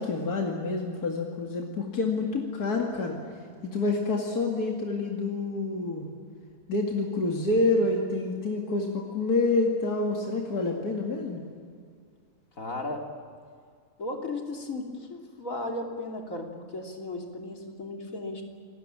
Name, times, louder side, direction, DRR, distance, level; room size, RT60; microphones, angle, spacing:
voice 1, 0.0-3.2 3.6-6.1 6.7-11.4, left 3 dB, 85° left, 0 dB, 2.8 m, -27 dB
voice 2, 12.6-13.1 14.0-18.4, left 2 dB, 60° left, 2 dB, 3.4 m, -35 dB
28.0 x 20.0 x 8.9 m, 2.2 s
omnidirectional pair, 1.6 m